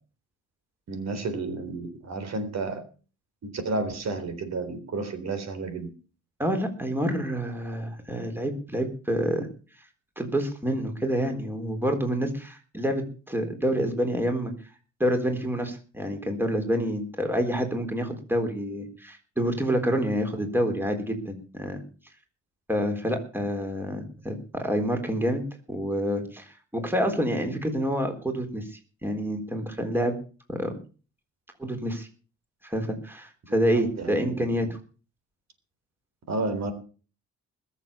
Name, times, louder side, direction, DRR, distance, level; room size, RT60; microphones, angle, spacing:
voice 1, 0.9-2.8 3.4-5.9 33.5-34.7 36.3-36.7, right 3 dB, 60° right, 9 dB, 3.9 m, -32 dB
voice 2, 6.4-9.5 10.2-14.5 15.0-21.8 22.7-25.4 25.7-30.1 30.5-30.7 31.6-32.1 32.6-34.7, equal, 5° right, 5 dB, 3.9 m, -28 dB
20.5 x 7.5 x 6.9 m, 0.38 s
cardioid pair, 90°, 30 cm